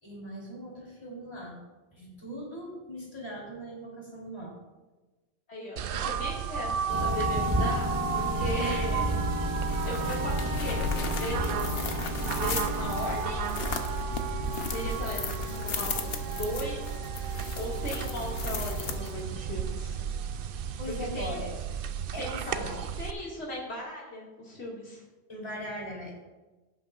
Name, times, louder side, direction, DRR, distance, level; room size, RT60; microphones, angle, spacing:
voice 1, 0.0-1.6 1.9-4.5 8.5-9.1 20.8-21.5 22.1-22.8 25.3-26.1, equal, 25° left, -4 dB, 3.5 m, -39 dB
voice 2, 5.5-6.7 7.0-8.9 9.9-11.7 12.4-13.5 14.0-14.2 14.4-20.0 21.1-21.3 22.2-22.7 23.0-25.0, left 1 dB, 80° left, -4 dB, 2.4 m, -37 dB
sound 1, 5.8-23.1, right 8 dB, 65° right, 0.7 m, -34 dB
sound 2, 6.9-13.2, equal, 15° right, 1.1 m, -32 dB
sound 3, 9.5-19.4, left 5 dB, 65° left, 1.1 m, -35 dB
17.0 x 8.1 x 2.5 m, 1.2 s
omnidirectional pair, 1.1 m